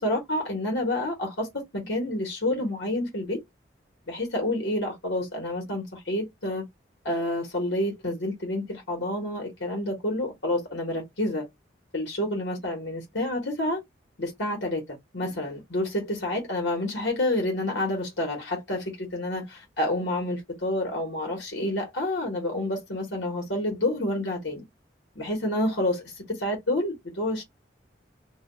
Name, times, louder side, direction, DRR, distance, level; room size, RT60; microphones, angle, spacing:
voice 1, 0.0-3.4 4.1-6.6 7.0-11.5 11.9-13.8 14.2-24.6 25.2-27.4, left 1 dB, 75° left, 1.1 m, -29 dB
2.4 x 2.2 x 3.8 m
head